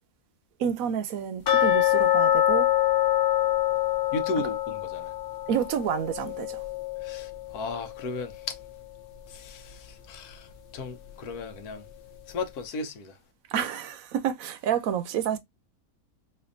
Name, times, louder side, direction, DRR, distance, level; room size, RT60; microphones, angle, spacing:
voice 1, 0.6-2.7 5.5-6.6 13.5-15.4, right 8 dB, 70° right, 1.0 m, -29 dB
sound 1, 1.5-8.3 8.6-8.7 9.2-9.3 9.8-9.9, left 12 dB, 65° left, 0.5 m, -25 dB
voice 2, 4.1-5.1 7.0-8.6 9.3-10.5 10.7-11.8 12.3-13.1, left 3 dB, 90° left, 1.3 m, -35 dB
4.3 x 2.6 x 2.5 m
omnidirectional pair, 1.6 m